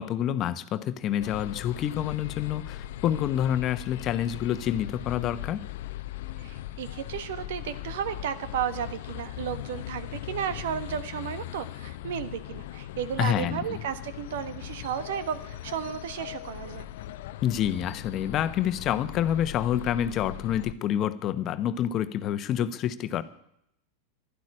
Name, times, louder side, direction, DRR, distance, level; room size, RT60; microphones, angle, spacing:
voice 1, 0.0-5.6 13.2-13.8 17.4-23.2, left 10 dB, 40° left, 1.1 m, -28 dB
sound 1, 1.2-20.7, left 13 dB, 65° left, 0.7 m, -39 dB
voice 2, 6.4-16.9, right 9 dB, 70° right, 1.4 m, -33 dB
12.0 x 12.0 x 9.9 m
hypercardioid pair, 105°, 0 cm